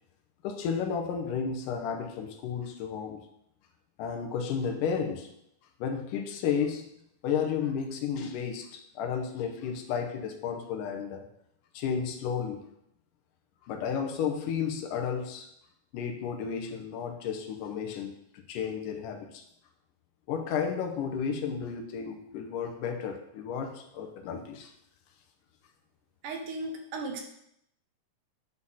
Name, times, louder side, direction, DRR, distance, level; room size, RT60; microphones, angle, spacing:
voice 1, 0.4-3.2 4.0-5.3 5.8-6.9 7.2-11.3 11.7-12.7 13.7-15.5 15.9-19.4 20.3-24.7, left 7 dB, 80° left, 4 dB, 2.5 m, -32 dB
voice 2, 26.2-27.2, right 2 dB, 75° right, 3 dB, 2.6 m, -36 dB
9.6 x 4.3 x 5.6 m, 0.76 s
omnidirectional pair, 3.8 m